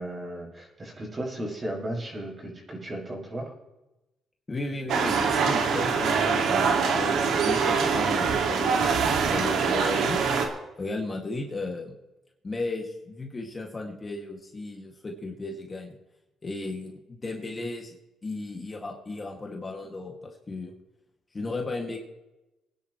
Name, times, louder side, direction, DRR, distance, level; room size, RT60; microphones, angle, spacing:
voice 1, 0.0-3.5, right 1 dB, 30° right, -3 dB, 6.3 m, -35 dB
voice 2, 4.5-10.2 10.8-11.9 12.4-15.9 16.4-18.0 18.2-20.7 21.3-22.0, left 2 dB, 30° left, 1 dB, 2.3 m, -35 dB
sound 1, 4.9-10.5, right 5 dB, 75° right, 2.2 m, -24 dB
24.0 x 10.5 x 3.2 m, 0.98 s
cardioid pair, 90°, 0 cm